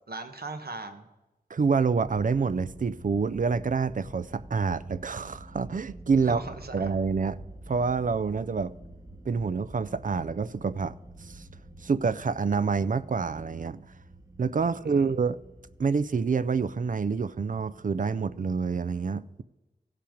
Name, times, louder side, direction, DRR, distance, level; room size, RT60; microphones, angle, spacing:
voice 1, 0.1-1.1 6.2-6.9 14.6-15.1, right 3 dB, 75° right, 1.1 m, -39 dB
voice 2, 1.5-6.4 6.7-7.4 7.7-8.7 9.3-11.5 11.8-13.9 14.4-15.4 15.8-19.4, right 5 dB, 55° right, 0.4 m, -27 dB
sound 1, 2.0-18.4, right 1 dB, 20° right, 1.0 m, -48 dB
16.0 x 5.7 x 5.1 m
wide cardioid pair, 45°, 16 cm